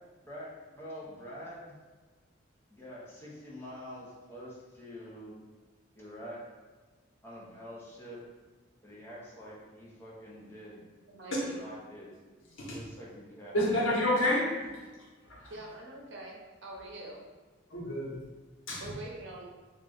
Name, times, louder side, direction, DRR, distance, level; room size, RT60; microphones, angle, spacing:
voice 1, 0.2-1.8 2.7-5.4 5.9-6.4 7.2-8.2 8.8-10.9 11.5-12.1 12.7-13.6, equal, 10° left, -6 dB, 0.7 m, -46 dB
voice 2, 11.1-11.6 15.5-17.2 18.8-19.4, right 2 dB, 65° right, -2 dB, 0.7 m, -44 dB
voice 3, 13.5-14.6 15.2-15.5 17.7-18.1 18.7-18.9, left 1 dB, 85° left, -4 dB, 1.0 m, -29 dB
3.0 x 2.4 x 3.9 m, 1.4 s
head